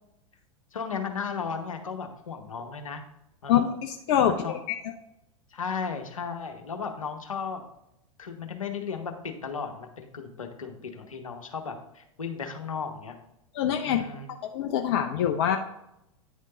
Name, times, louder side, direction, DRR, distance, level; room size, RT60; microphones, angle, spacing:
voice 1, 0.7-3.0 3.4-3.7 4.3-4.6 5.5-7.6 8.2-13.2 13.9-14.3, left 5 dB, 75° left, 5 dB, 0.9 m, -35 dB
voice 2, 3.5-4.3 13.6-14.0 14.5-15.6, left 10 dB, 50° left, 4 dB, 0.5 m, -24 dB
9.5 x 3.7 x 3.8 m, 0.83 s
figure-of-eight pair, 90°, 17 cm